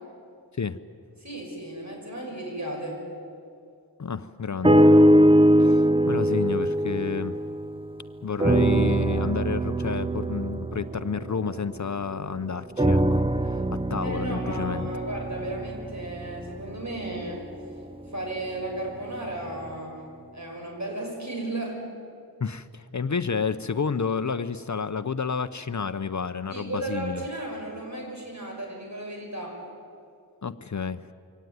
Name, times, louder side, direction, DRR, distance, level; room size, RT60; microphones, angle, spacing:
voice 1, 1.2-3.0 14.0-17.4 18.1-20.0 20.3-21.8 26.5-29.6, right 1 dB, 45° right, 1 dB, 6.4 m, -34 dB
voice 2, 4.0-4.9 5.6-7.3 8.2-13.2 13.5-14.9 22.4-27.3 30.4-31.0, left 5 dB, 45° left, 12 dB, 0.7 m, -30 dB
sound 1, 4.6-8.0 8.4-12.1 12.8-17.0 17.6-17.7, right 1 dB, 15° right, 0.6 m, -22 dB
24.0 x 17.5 x 9.4 m, 2.5 s
wide cardioid pair, 70°, 39 cm